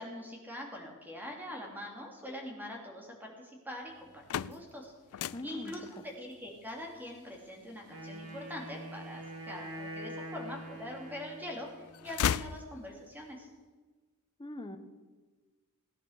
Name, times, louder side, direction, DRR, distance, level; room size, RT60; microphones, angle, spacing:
voice 1, 0.0-13.5, left 1 dB, 10° right, 0 dB, 3.0 m, -43 dB
sound 1, 4.0-9.9 10.5-11.3 11.6-13.2, left 9 dB, 75° left, 0.4 m, -38 dB
voice 2, 5.3-5.7 14.4-14.8, left 1 dB, 20° left, 7 dB, 1.2 m, -41 dB
Wind instrument woodwind instrument, 7.9-11.9, right 1 dB, 75° right, 3.4 m, -44 dB
17.5 x 10.0 x 6.6 m, 1.3 s
head